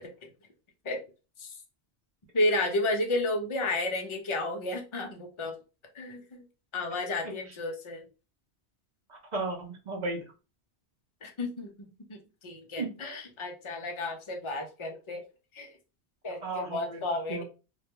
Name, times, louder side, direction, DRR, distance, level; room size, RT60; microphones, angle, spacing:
voice 1, 2.3-5.6 5.9-6.4 6.7-8.1 11.2-15.2 15.5-15.8 16.2-17.4, left 2 dB, 55° left, 3 dB, 0.3 m, -32 dB
voice 2, 9.1-10.2 12.8-12.9 16.4-17.0 17.3-17.4, right 3 dB, 50° right, 2 dB, 0.6 m, -34 dB
2.2 x 2.1 x 2.9 m, 0.32 s
omnidirectional pair, 1.2 m